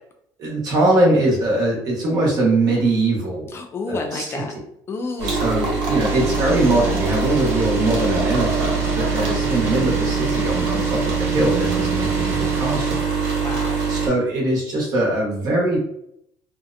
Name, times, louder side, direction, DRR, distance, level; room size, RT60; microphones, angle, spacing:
voice 1, 0.4-3.5 3.9-4.4 5.2-13.0 13.9-15.8, right 2 dB, 50° right, -3 dB, 1.0 m, -21 dB
voice 2, 3.5-4.5 4.9-5.7 8.9-9.2 13.4-13.8, left 3 dB, 30° left, 4 dB, 0.3 m, -30 dB
sound 1, 5.2-14.1, right 5 dB, 75° right, 1.1 m, -23 dB
sound 2, 6.0-13.0, right 4 dB, 30° right, 0.5 m, -32 dB
2.7 x 2.1 x 2.5 m, 0.74 s
cardioid pair, 140°, 9 cm